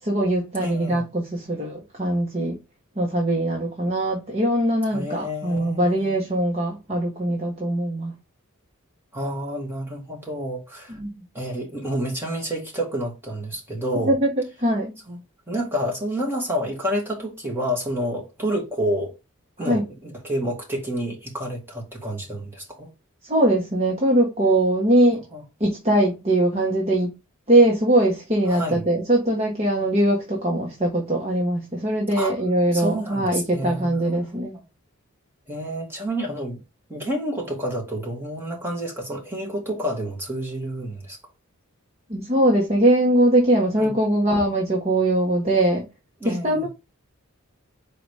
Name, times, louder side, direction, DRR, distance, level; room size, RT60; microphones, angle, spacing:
voice 1, 0.0-2.6 2.9-8.1 10.9-11.2 13.9-14.9 19.6-19.8 23.2-25.2 25.6-27.1 27.5-34.6 42.1-45.8 46.2-46.7, right 1 dB, 30° right, 1.4 m, -21 dB
voice 2, 0.6-1.0 4.9-6.1 9.1-11.0 11.3-14.1 15.1-15.2 15.5-19.1 19.6-22.9 25.3-25.4 28.5-28.9 32.1-32.3 32.7-34.6 35.5-36.6 36.9-41.2 43.8-43.9 46.2-46.7, equal, 10° right, 2.1 m, -29 dB
5.0 x 4.0 x 4.8 m
head